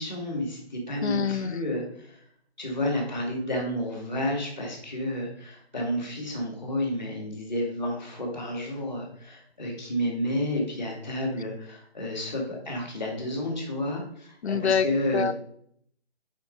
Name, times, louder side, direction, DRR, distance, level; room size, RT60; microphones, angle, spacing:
voice 1, 0.0-2.2 2.6-15.3, left 1 dB, 5° right, -11 dB, 1.1 m, -31 dB
voice 2, 1.0-1.5 14.4-14.9 15.1-15.3, left 7 dB, 80° left, 11 dB, 0.6 m, -25 dB
7.2 x 5.2 x 5.2 m, 0.68 s
hypercardioid pair, 175°, 32 cm